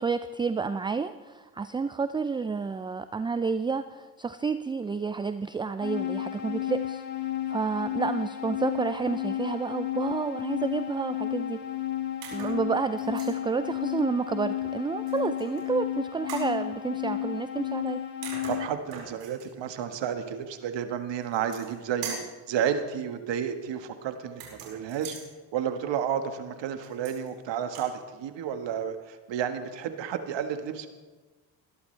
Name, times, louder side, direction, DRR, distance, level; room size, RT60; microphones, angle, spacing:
voice 1, 0.0-7.0 7.5-11.6 12.3-18.0, right 5 dB, 10° right, 12 dB, 0.3 m, -30 dB
sound 1, 5.8-18.7, left 12 dB, 80° left, 1.9 m, -32 dB
sound 2, 12.2-12.6 13.0-13.4 15.1-15.6 16.3-16.5 17.9-18.0 18.2-19.5 21.2-21.8 22.0-22.4 24.3-25.3 26.8-27.3 27.6-27.9, right 5 dB, 75° right, 5.1 m, -41 dB
voice 2, 18.5-22.2 22.5-25.2 25.5-30.9, right 8 dB, 60° right, 8 dB, 1.6 m, -31 dB
21.5 x 11.5 x 3.3 m, 1.3 s
supercardioid pair, 70°, 49 cm